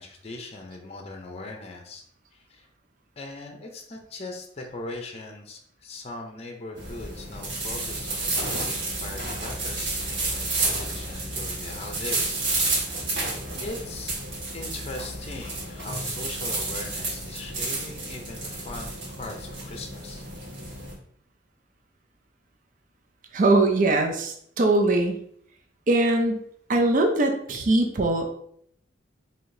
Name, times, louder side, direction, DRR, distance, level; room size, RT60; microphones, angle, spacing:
voice 1, 0.0-2.0 2.3-2.7 3.2-14.1 14.5-20.2, left 2 dB, 35° left, 2 dB, 0.6 m, -40 dB
sound 1, 6.8-20.9, right 2 dB, 75° right, 1.4 m, -31 dB
voice 2, 23.3-25.2 25.9-26.4 26.7-28.3, right 2 dB, 45° right, 4 dB, 0.5 m, -21 dB
4.8 x 2.8 x 2.6 m, 0.65 s
head